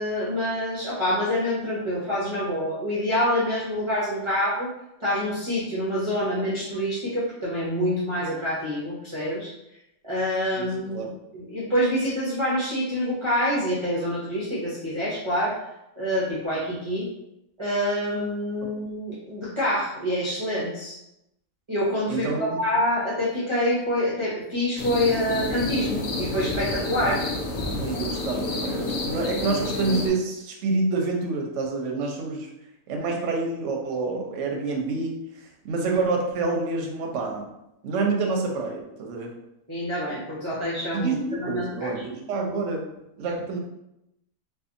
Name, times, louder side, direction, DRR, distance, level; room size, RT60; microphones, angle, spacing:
voice 1, 0.0-4.7 5.0-9.5 10.0-15.5 16.0-17.1 17.6-21.0 21.7-27.2 39.7-41.9, left 1 dB, 40° right, -8 dB, 0.4 m, -26 dB
voice 2, 10.6-11.1 22.1-22.6 27.8-32.5 32.9-35.2 35.6-37.5 37.8-39.3 40.9-42.8 43.2-43.6, right 3 dB, 65° right, 1 dB, 0.8 m, -27 dB
sound 1, 24.8-30.1, left 2 dB, 65° left, 0.7 m, -29 dB
2.6 x 2.3 x 2.5 m, 0.86 s
omnidirectional pair, 1.5 m